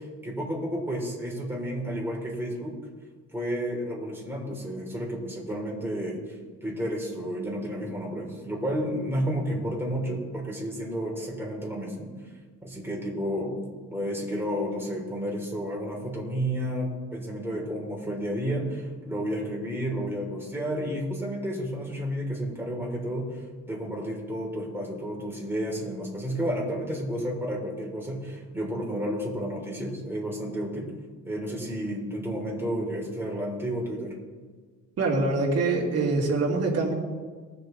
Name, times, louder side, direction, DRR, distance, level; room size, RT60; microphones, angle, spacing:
voice 1, 0.0-2.8 3.3-12.1 12.6-13.5 13.9-30.9 31.3-34.1, equal, 5° right, -2 dB, 3.7 m, -31 dB
voice 2, 35.0-36.9, right 3 dB, 55° right, -1 dB, 2.8 m, -24 dB
19.5 x 6.8 x 4.0 m, 1.5 s
cardioid pair, 90°, 30 cm